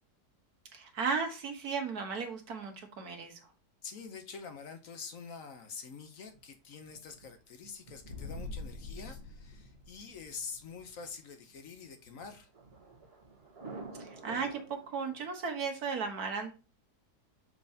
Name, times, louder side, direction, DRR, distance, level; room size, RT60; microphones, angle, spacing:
voice 1, 0.7-3.5 14.0-16.5, right 5 dB, 70° right, 5 dB, 1.6 m, -35 dB
voice 2, 3.8-12.5, left 5 dB, 60° left, 7 dB, 1.1 m, -46 dB
Thunder, 6.3-15.3, right 3 dB, 40° right, 1.4 m, -52 dB
sound 1, 8.0-10.4, left 3 dB, 85° left, 1.4 m, -44 dB
6.6 x 5.3 x 2.7 m, 0.31 s
omnidirectional pair, 1.7 m